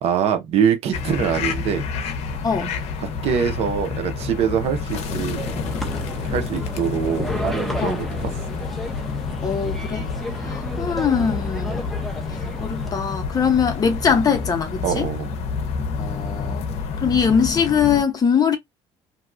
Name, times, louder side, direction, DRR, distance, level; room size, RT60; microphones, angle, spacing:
voice 1, 0.0-1.8 3.0-5.4 6.2-8.3 10.4-10.5 14.8-15.3, right 8 dB, 65° right, 0.8 m, -24 dB
sound 1, 0.9-18.0, left 5 dB, 70° left, 0.6 m, -29 dB
voice 2, 2.4-2.7 7.8-8.0 9.4-10.1 10.4-11.9 12.6-15.1 16.0-16.7 17.0-18.6, left 6 dB, 35° left, 0.8 m, -22 dB
sound 2, 5.4-12.9, equal, ahead, 0.6 m, -32 dB
2.7 x 2.3 x 2.5 m
cardioid pair, 115°, 11 cm